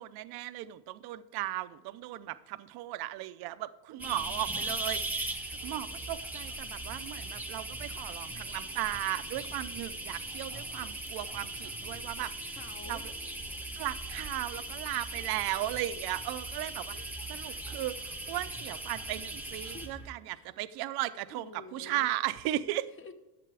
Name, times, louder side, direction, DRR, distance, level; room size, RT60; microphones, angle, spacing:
voice 1, 0.0-12.3 12.9-13.0 13.8-16.9 17.3-22.9, right 15 dB, 55° right, 0.6 m, -36 dB
voice 2, 4.0-4.9 12.2-13.1 14.2-14.3 16.9-17.1 19.7-19.9 20.2-20.9 21.2-22.1 22.7-23.1, left 4 dB, 25° left, 1.0 m, -51 dB
sound 1, 4.0-20.1, right 2 dB, 5° right, 0.8 m, -39 dB
11.0 x 7.7 x 3.4 m
supercardioid pair, 110°, 46 cm